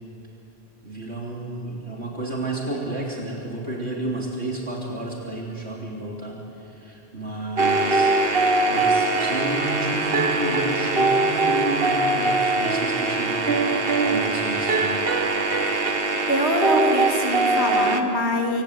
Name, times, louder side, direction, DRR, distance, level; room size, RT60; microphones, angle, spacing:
voice 1, 0.8-13.6 14.0-15.1, right 2 dB, 70° right, -2 dB, 3.6 m, -31 dB
sound 1, 7.6-18.0, right 3 dB, 55° right, 1.8 m, -22 dB
voice 2, 16.3-18.6, equal, 70° left, 0 dB, 3.9 m, -24 dB
27.5 x 25.0 x 8.4 m, 2.9 s
omnidirectional pair, 1.1 m